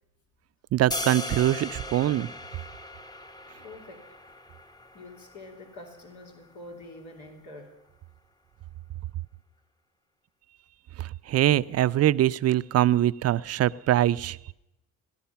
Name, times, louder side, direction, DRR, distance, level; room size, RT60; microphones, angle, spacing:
voice 1, 0.7-2.3 11.0-14.4, right 13 dB, 55° right, 16 dB, 0.5 m, -23 dB
sound 1, 0.9-7.0, left 1 dB, 15° left, 0.9 m, -39 dB
voice 2, 3.6-4.0 4.9-7.7, left 2 dB, 80° left, 1 dB, 3.0 m, -45 dB
17.5 x 12.5 x 5.7 m, 0.87 s
cardioid pair, 90°, 30 cm